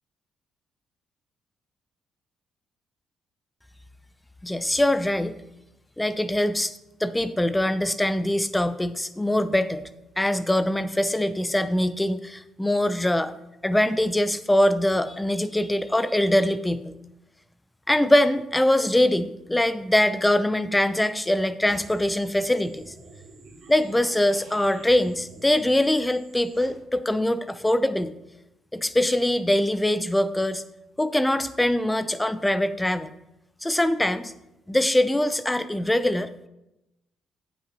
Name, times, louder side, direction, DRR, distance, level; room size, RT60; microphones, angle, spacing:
voice 1, 4.4-5.3 6.0-6.7 7.0-9.9 10.2-13.3 13.6-16.9 17.9-22.9 23.7-28.1 28.7-30.6 31.0-33.1 33.6-34.3 34.7-36.3, left 1 dB, 10° left, 13 dB, 0.6 m, -23 dB
sound 1, 21.7-26.7, right 3 dB, 60° right, 2.4 m, -49 dB
9.1 x 8.0 x 4.0 m, 0.91 s
cardioid pair, 90°, 0 cm